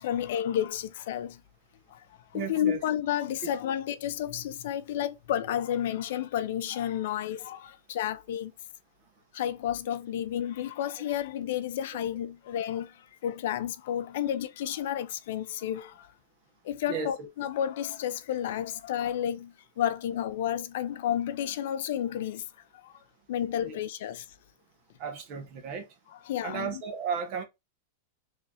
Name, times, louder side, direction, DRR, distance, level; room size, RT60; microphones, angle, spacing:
voice 1, 0.0-1.4 1.9-8.5 9.3-16.1 16.6-22.5 22.7-23.0 23.3-24.3 26.3-26.8, left 10 dB, 65° left, 0.5 m, -31 dB
voice 2, 2.3-2.8 3.4-3.5 16.9-17.3 23.6-23.8 25.0-25.9 26.4-27.4, right 6 dB, 40° right, 1.2 m, -34 dB
3.7 x 3.2 x 2.8 m
supercardioid pair, 150°, 0 cm